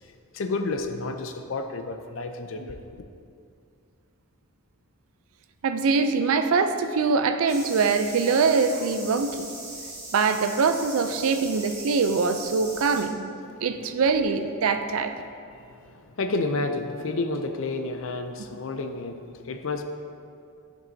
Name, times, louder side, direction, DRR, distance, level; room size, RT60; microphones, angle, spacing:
voice 1, 0.3-3.0 15.8-19.2 19.4-19.8, left 3 dB, 60° left, 6 dB, 0.5 m, -30 dB
voice 2, 5.6-9.5 10.1-13.3 13.6-15.2, right 4 dB, 75° right, 8 dB, 0.4 m, -23 dB
sound 1, 7.5-13.0, right 2 dB, 30° right, 1.7 m, -40 dB
10.0 x 5.3 x 2.7 m, 2.4 s
head